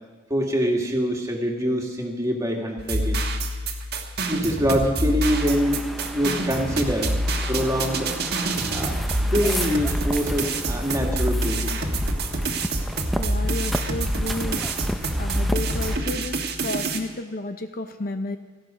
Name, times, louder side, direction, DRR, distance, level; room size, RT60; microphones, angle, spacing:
voice 1, 0.3-3.2 4.3-5.8 6.1-7.2 7.5-8.1 8.7-9.0 9.3-11.9, equal, 15° right, 0 dB, 2.1 m, -24 dB
sound 1, 2.8-17.0, right 1 dB, 55° right, 1.5 m, -26 dB
sound 2, 5.3-16.0, equal, ahead, 0.6 m, -34 dB
voice 2, 13.2-14.8 15.2-18.4, left 2 dB, 50° left, 8 dB, 0.7 m, -32 dB
17.5 x 14.0 x 5.1 m, 1.4 s
head